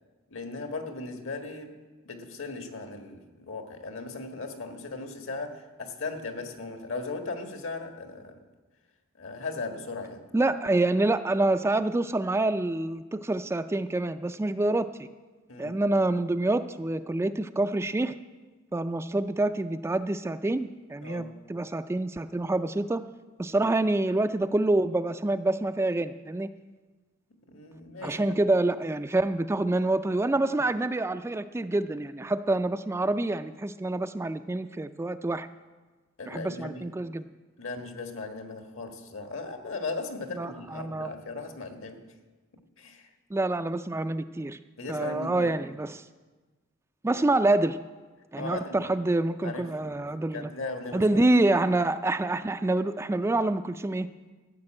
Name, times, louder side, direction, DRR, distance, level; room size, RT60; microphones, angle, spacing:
voice 1, 0.3-1.7 2.0-8.4 9.2-10.2 15.5-15.8 21.0-21.3 27.5-28.3 36.2-36.9 37.6-42.0 42.8-43.1 44.8-45.6 48.4-48.9 49.4-51.3, left 3 dB, 70° left, 5 dB, 1.6 m, -37 dB
voice 2, 10.3-14.9 15.6-18.1 18.7-23.0 23.4-26.5 28.0-35.5 36.3-37.2 40.4-41.1 43.3-44.6 44.9-46.0 47.0-47.8 48.3-50.5 50.9-54.1, right 2 dB, 15° right, 10 dB, 0.3 m, -27 dB
14.0 x 6.7 x 8.8 m, 1.3 s
head